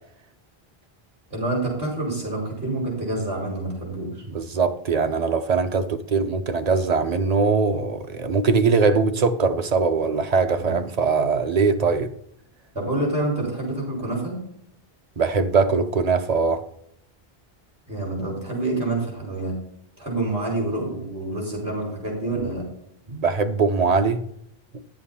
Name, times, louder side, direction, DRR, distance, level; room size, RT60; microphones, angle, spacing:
voice 1, 1.3-4.2 10.5-10.8 12.7-14.4 17.9-19.5 20.0-22.6, right 2 dB, 70° right, 5.2 m, -27 dB
voice 2, 4.3-12.1 15.2-16.6 23.1-24.2, right 4 dB, 45° right, 0.8 m, -21 dB
11.5 x 7.4 x 4.3 m
omnidirectional pair, 1.0 m